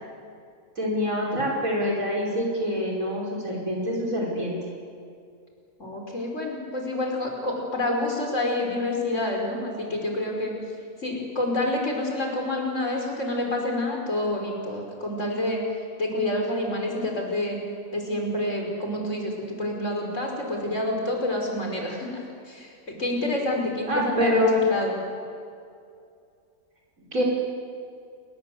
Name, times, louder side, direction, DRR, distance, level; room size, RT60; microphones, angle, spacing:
voice 1, 0.8-4.5 23.9-24.7 27.1-27.2, left 1 dB, 70° right, -3 dB, 5.8 m, -25 dB
voice 2, 5.8-10.5 11.0-15.6 16.0-17.6 17.9-25.0, left 1 dB, 55° left, 1 dB, 5.8 m, -28 dB
29.5 x 20.5 x 8.1 m, 2.4 s
omnidirectional pair, 1.5 m